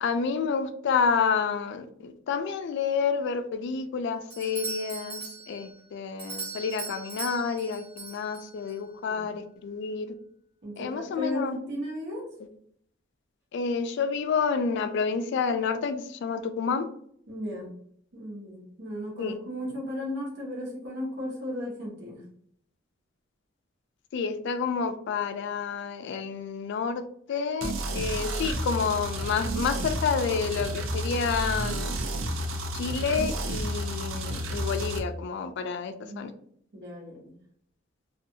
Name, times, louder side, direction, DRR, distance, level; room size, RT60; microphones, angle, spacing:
voice 1, 0.0-10.1 10.8-11.6 13.5-16.9 19.2-19.4 24.1-27.0 27.3-32.0 32.7-36.3, left 5 dB, 60° left, 9 dB, 0.3 m, -29 dB
Doorbell, 4.3-8.8, right 4 dB, 15° right, 0.8 m, -39 dB
voice 2, 8.9-9.3 10.6-12.2 17.3-17.7 18.1-22.2 36.0-36.2 36.7-37.2, left 1 dB, 60° right, -2 dB, 0.9 m, -35 dB
sound 1, 27.6-35.0, right 1 dB, 90° right, 0.5 m, -31 dB
2.6 x 2.3 x 2.6 m, 0.64 s
head